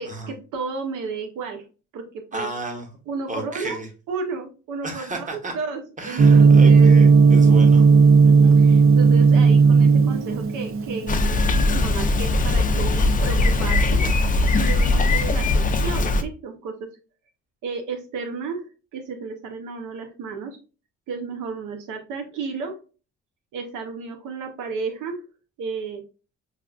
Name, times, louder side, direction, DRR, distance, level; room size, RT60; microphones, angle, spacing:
voice 1, 0.0-1.6 1.9-2.5 3.1-3.8 4.1-6.9 8.2-14.1 14.5-17.0 17.6-20.6 21.1-22.8 23.5-25.2 25.6-26.0, right 4 dB, 85° right, 5 dB, 0.7 m, -33 dB
voice 2, 2.3-2.9 3.3-3.9 4.8-5.5 6.0-7.9, right 2 dB, 25° right, 4 dB, 1.2 m, -33 dB
Gong, 6.2-14.2, right 5 dB, 45° right, 0.5 m, -15 dB
Bicycle, 11.1-16.2, left 2 dB, 25° left, 0.4 m, -20 dB
5.6 x 2.4 x 2.3 m, 0.34 s
cardioid pair, 90°, 30 cm